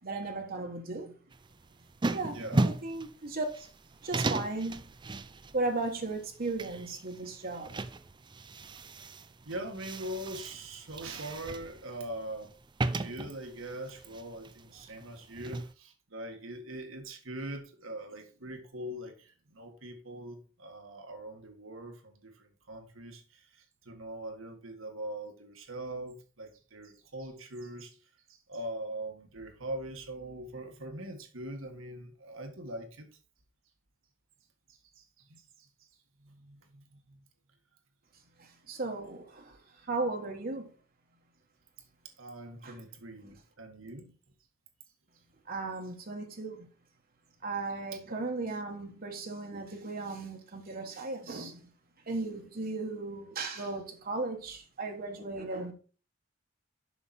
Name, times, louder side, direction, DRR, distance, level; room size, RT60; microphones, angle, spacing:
voice 1, 0.0-1.1 2.1-2.4 2.6-3.7 4.0-4.9 5.5-7.8 38.4-40.7 42.6-42.8 45.5-46.7 47.4-51.7 52.1-55.7, right 3 dB, 50° right, 1.3 m, -36 dB
sound 1, 1.3-15.7, right 2 dB, 25° right, 0.4 m, -36 dB
voice 2, 9.5-12.5 13.0-28.0 28.3-33.1 34.7-35.7 36.2-37.2 42.2-44.1 48.0-48.1, right 1 dB, 75° right, 1.7 m, -42 dB
7.2 x 5.9 x 4.3 m
head